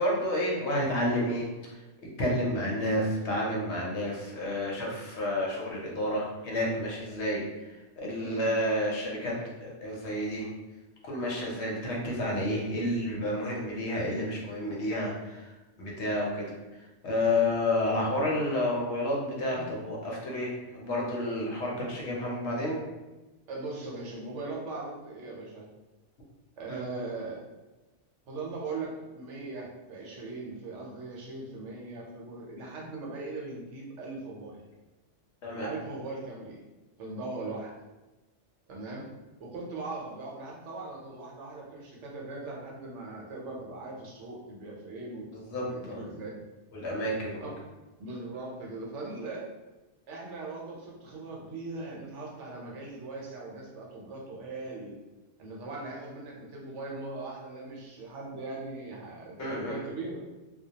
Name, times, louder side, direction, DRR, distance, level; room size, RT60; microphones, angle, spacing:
voice 1, 0.0-1.7 2.2-9.3 9.6-10.5 11.0-15.5 15.8-16.5 17.0-22.8 26.7-26.8 35.4-35.7 45.3-46.0 46.7-47.5 59.4-59.8, left 1 dB, 70° left, -2 dB, 0.9 m, -30 dB
voice 2, 8.2-8.5 17.9-18.1 19.5-19.7 23.5-25.7 26.6-27.4 28.3-34.6 35.6-36.6 37.0-37.7 38.7-39.1 39.4-45.3 45.5-46.4 47.4-47.6 48.0-49.5 50.1-54.9 55.4-60.2, right 3 dB, 75° right, -2 dB, 0.9 m, -39 dB
2.2 x 2.1 x 2.7 m, 1.1 s
omnidirectional pair, 1.3 m